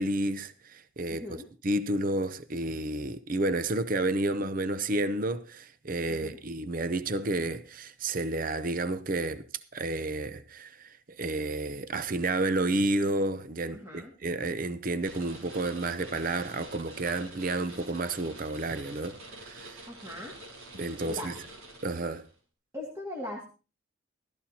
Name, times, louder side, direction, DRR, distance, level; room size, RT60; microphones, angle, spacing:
voice 1, 0.0-1.4 1.6-9.4 9.7-19.8 20.7-21.3 21.8-22.3, right 2 dB, 40° right, 0.6 m, -31 dB
voice 2, 1.1-1.5 6.2-6.4 13.7-14.1 19.9-20.3 21.0-21.3 22.7-23.5, left 1 dB, 15° right, 2.1 m, -39 dB
sound 1, 15.0-22.3, right 1 dB, 85° right, 5.4 m, -47 dB
15.5 x 14.0 x 2.8 m
head